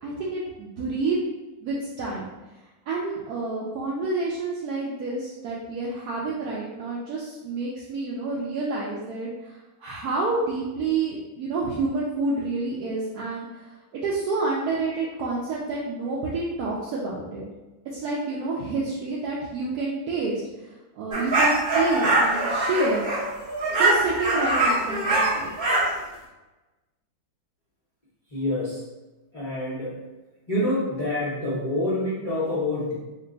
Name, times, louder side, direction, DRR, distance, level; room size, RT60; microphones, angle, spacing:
voice 1, 0.0-1.2 1.6-2.3 2.9-9.3 9.8-17.5 17.9-20.4 21.0-23.0 23.8-25.5, right 3 dB, 75° right, -4 dB, 0.8 m, -28 dB
sound 1, 21.1-25.9, right 2 dB, 45° right, 0.8 m, -23 dB
voice 2, 28.3-28.8 29.3-29.9 30.5-32.9, left 1 dB, 85° left, -10 dB, 0.3 m, -27 dB
3.1 x 2.3 x 3.7 m, 1.1 s
omnidirectional pair, 2.1 m